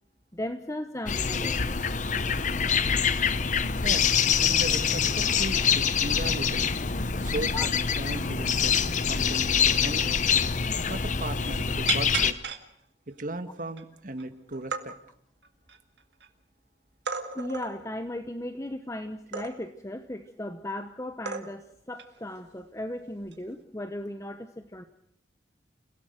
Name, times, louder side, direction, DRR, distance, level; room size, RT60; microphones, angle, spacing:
voice 1, 0.3-1.6 7.5-7.7 8.2-8.3 17.3-24.8, left 1 dB, 15° left, 8 dB, 1.0 m, -36 dB
sound 1, 1.1-12.3, left 6 dB, 45° left, 0.8 m, -25 dB
voice 2, 3.8-6.7 7.2-7.7 8.0-10.2 10.9-12.3 13.1-14.9, right 1 dB, 50° right, 10 dB, 1.5 m, -37 dB
sound 2, 11.1-11.3 11.9-12.6 13.2-13.3 13.7-14.2 14.5-14.8 15.4-16.3 17.0-17.8 19.3-19.8 20.7-20.8 21.2-21.7 22.0-22.2 23.2-23.6, right 6 dB, 70° right, 2.1 m, -34 dB
29.5 x 17.0 x 6.5 m, 0.70 s
head